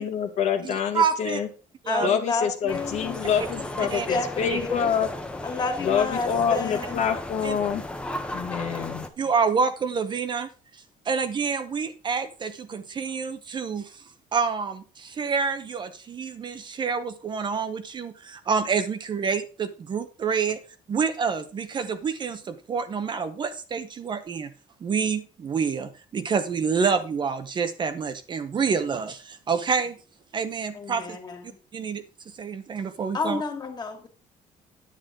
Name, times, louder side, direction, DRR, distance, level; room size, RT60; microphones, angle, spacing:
voice 1, 0.0-1.5 2.0-5.1 5.8-7.8 8.3-9.1, left 7 dB, 55° left, 6 dB, 1.4 m, -26 dB
voice 2, 0.6-1.4 1.8-2.1 3.9-4.1 4.5-4.6 7.4-7.6 9.2-10.5 11.1-14.0 14.3-20.6 20.9-24.5 24.8-30.0 30.3-31.2 31.7-32.0 32.4-33.4, right 5 dB, 35° right, 10 dB, 0.8 m, -27 dB
voice 3, 1.9-3.2 3.8-4.9 5.4-7.0 30.7-31.6 33.1-34.1, left 3 dB, 30° left, 4 dB, 2.3 m, -31 dB
sound 1, 2.7-9.1, left 1 dB, 5° left, 1.0 m, -35 dB
10.0 x 8.3 x 3.8 m, 0.35 s
cardioid pair, 150°, 14 cm